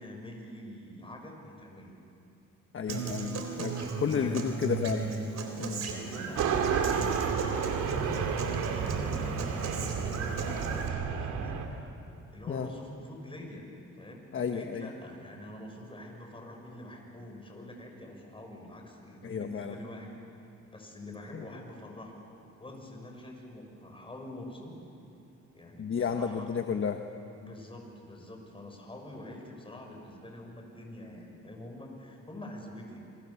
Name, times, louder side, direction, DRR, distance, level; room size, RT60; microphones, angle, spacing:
voice 1, 0.0-2.0 3.0-4.6 5.4-11.5 12.3-13.7 14.0-14.2 14.5-20.2 20.7-22.2 22.6-24.8 25.5-26.5 27.3-33.0, left 1 dB, 15° left, 1 dB, 6.6 m, -46 dB
voice 2, 2.7-3.7 4.0-5.1 5.6-5.9 12.5-12.7 14.3-14.9 19.2-19.8 21.3-21.4 25.8-27.0, left 6 dB, 40° left, 6 dB, 1.3 m, -32 dB
Human voice / Acoustic guitar, 2.9-10.9, right 4 dB, 60° right, 3.9 m, -36 dB
sound 1, 6.3-11.7, right 6 dB, 85° right, 2.6 m, -31 dB
28.5 x 23.5 x 7.2 m, 2.7 s
cardioid pair, 90°, 30 cm